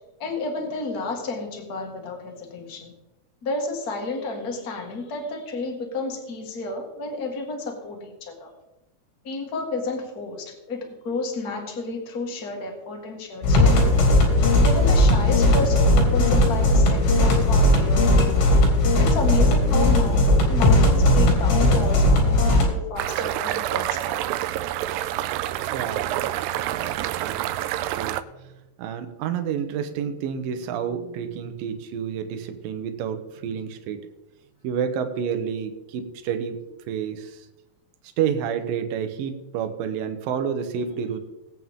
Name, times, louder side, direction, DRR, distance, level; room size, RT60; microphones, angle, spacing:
voice 1, 0.2-2.9 3.4-8.5 9.2-13.9 14.6-18.4 19.0-24.2 40.9-41.0, left 2 dB, 40° left, 2 dB, 1.4 m, -31 dB
sound 1, 13.4-22.6, left 1 dB, 80° left, 4.8 m, -17 dB
sound 2, 23.0-28.2, right 13 dB, 85° right, 2.6 m, -27 dB
voice 2, 25.7-27.0 27.3-27.5 28.0-28.5 28.8-34.1 34.6-37.4 38.2-41.2, right 7 dB, 70° right, 7 dB, 2.5 m, -29 dB
20.0 x 8.5 x 3.7 m, 1.0 s
omnidirectional pair, 4.7 m